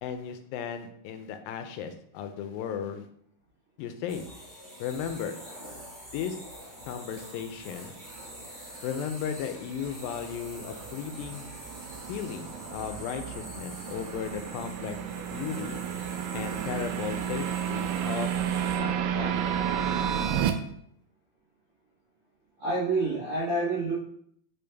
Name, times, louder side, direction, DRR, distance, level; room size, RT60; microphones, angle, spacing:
voice 1, 0.0-3.1 3.8-4.3 4.8-5.4 6.1-6.4 6.9-7.9 8.8-11.4 12.1-15.0 15.3-15.8 16.3-18.4 18.8-19.4, left 8 dB, 80° left, 8 dB, 2.3 m, -35 dB
sound 1, 4.1-18.8, right 1 dB, 25° right, 2.2 m, -45 dB
sound 2, 9.0-20.5, right 9 dB, 80° right, 2.0 m, -32 dB
voice 2, 22.6-24.0, right 2 dB, 45° right, -9 dB, 2.2 m, -27 dB
5.4 x 5.2 x 3.4 m, 0.66 s
omnidirectional pair, 4.2 m